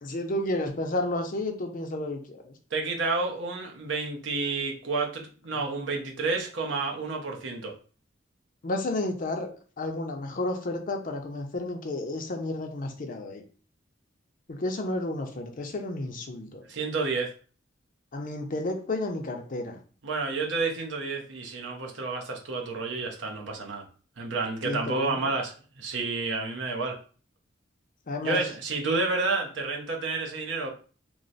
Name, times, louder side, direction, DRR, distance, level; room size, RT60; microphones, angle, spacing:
voice 1, 0.0-2.5 5.6-5.7 8.6-9.5 9.8-13.4 14.5-16.6 18.1-19.8 24.6-25.2 28.1-28.4, left 2 dB, 45° left, 4 dB, 0.6 m, -31 dB
voice 2, 2.7-7.7 16.7-17.3 20.0-23.9 24.2-27.0 28.2-30.7, right 3 dB, 70° right, 1 dB, 0.8 m, -30 dB
3.0 x 2.1 x 3.9 m, 0.40 s
head